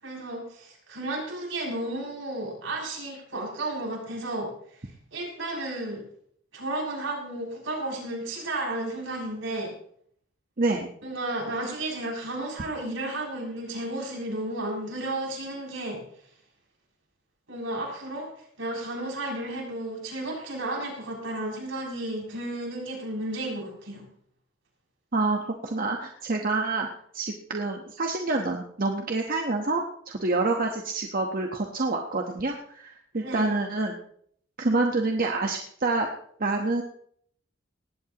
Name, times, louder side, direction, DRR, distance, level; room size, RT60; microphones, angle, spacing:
voice 1, 0.0-6.0 6.5-9.7 11.0-16.0 17.5-18.3 18.6-24.0 33.1-33.6, right 1 dB, 75° right, -2 dB, 7.3 m, -33 dB
voice 2, 10.6-10.9 25.1-26.9 27.1-33.9 34.6-36.1 36.4-36.8, right 3 dB, 45° right, 2 dB, 1.2 m, -27 dB
19.5 x 16.0 x 3.0 m, 0.64 s
head